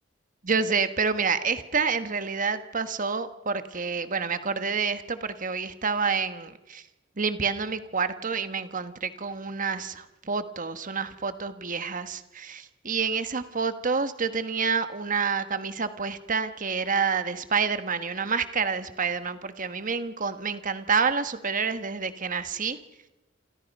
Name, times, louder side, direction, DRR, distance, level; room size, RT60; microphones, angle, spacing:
voice 1, 0.4-6.8 7.2-22.8, right 5 dB, 45° right, 10 dB, 1.3 m, -28 dB
27.5 x 27.5 x 5.4 m, 1.0 s
head